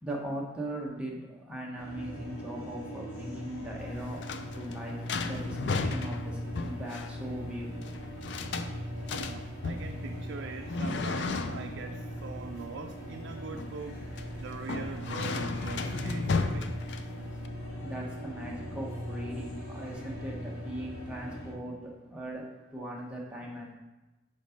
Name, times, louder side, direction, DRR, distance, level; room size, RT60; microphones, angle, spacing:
voice 1, 0.0-4.3 4.5-5.0 5.2-7.7 17.8-22.4 22.7-23.7, right 1 dB, 5° right, -3 dB, 1.0 m, -39 dB
sound 1, 1.8-21.5, equal, 45° left, 2.5 m, -40 dB
sound 2, 3.8-17.5, left 4 dB, 65° left, 0.4 m, -35 dB
voice 2, 9.1-14.1 14.4-16.7, right 5 dB, 70° right, 5 dB, 0.4 m, -42 dB
5.3 x 5.2 x 5.1 m, 1.1 s
head